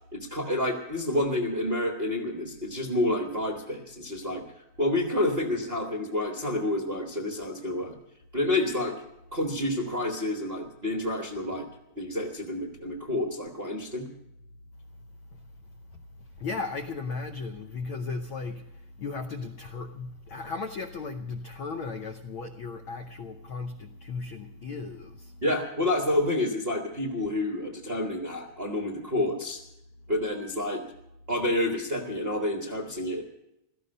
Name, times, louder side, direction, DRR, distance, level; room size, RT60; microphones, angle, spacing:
voice 1, 0.1-4.4 4.8-8.0 8.3-9.0 9.3-11.7 11.9-14.1 25.4-29.6 30.1-30.8 31.3-33.2, left 1 dB, 40° right, 0.8 m, -29 dB
voice 2, 16.2-25.6, left 4 dB, 80° left, 1.1 m, -36 dB
16.5 x 14.0 x 5.4 m
omnidirectional pair, 3.4 m